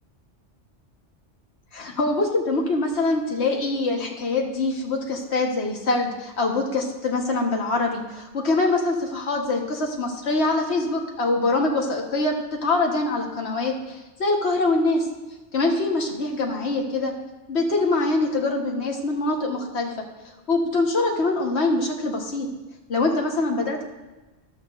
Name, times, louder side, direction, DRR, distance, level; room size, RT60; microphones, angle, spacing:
voice 1, 1.7-15.1 15.5-17.1 17.5-19.9 20.5-22.5 22.9-23.8, left 2 dB, 65° left, 1 dB, 1.7 m, -24 dB
14.0 x 11.5 x 2.6 m, 1.1 s
omnidirectional pair, 1.2 m